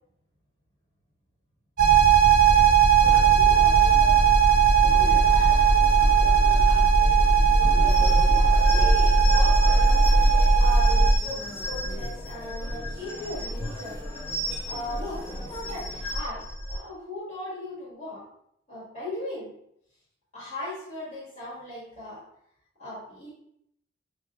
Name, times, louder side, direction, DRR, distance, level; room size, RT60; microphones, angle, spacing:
sound 1, 1.8-11.2, right 5 dB, 50° right, 0.5 m, -18 dB
voice 1, 2.4-2.7 3.7-3.8 7.7-9.9 10.6-13.9 14.7-18.2 18.7-19.5 20.3-22.2 22.8-23.3, left 1 dB, 40° left, -8 dB, 1.4 m, -38 dB
sound 2, 3.0-16.2, left 2 dB, 20° left, 1.1 m, -41 dB
sound 3, 7.9-16.8, equal, 65° left, 0.8 m, -33 dB
5.7 x 2.9 x 2.3 m, 0.73 s
head